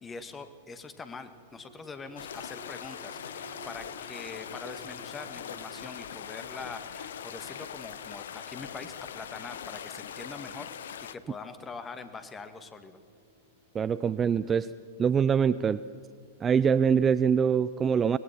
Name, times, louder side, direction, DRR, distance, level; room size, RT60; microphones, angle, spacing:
voice 1, 0.0-13.0, left 4 dB, 20° left, 10 dB, 1.7 m, -43 dB
sound 1, 1.1-15.8 16.2-16.3, right 2 dB, 50° right, 6.4 m, -55 dB
sound 2, 2.2-11.1, left 9 dB, 70° left, 0.7 m, -41 dB
voice 2, 13.7-14.7 15.0-15.8 16.4-18.2, right 7 dB, 20° right, 16 dB, 0.4 m, -24 dB
24.5 x 19.0 x 5.9 m, 2.1 s
figure-of-eight pair, 100°, 0 cm